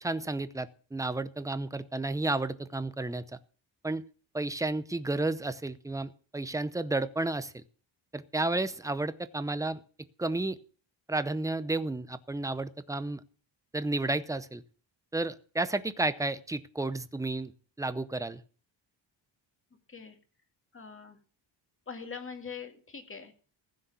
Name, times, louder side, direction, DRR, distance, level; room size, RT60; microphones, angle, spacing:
voice 1, 0.0-3.2 3.8-4.0 4.3-7.6 8.1-9.8 10.2-10.6 11.1-13.2 13.7-14.6 15.1-17.5 17.8-18.4, right 2 dB, 5° right, 14 dB, 0.7 m, -32 dB
voice 2, 20.7-21.2 21.9-23.3, left 5 dB, 25° left, 6 dB, 2.2 m, -42 dB
15.5 x 6.4 x 8.3 m, 0.40 s
cardioid pair, 140°, 47 cm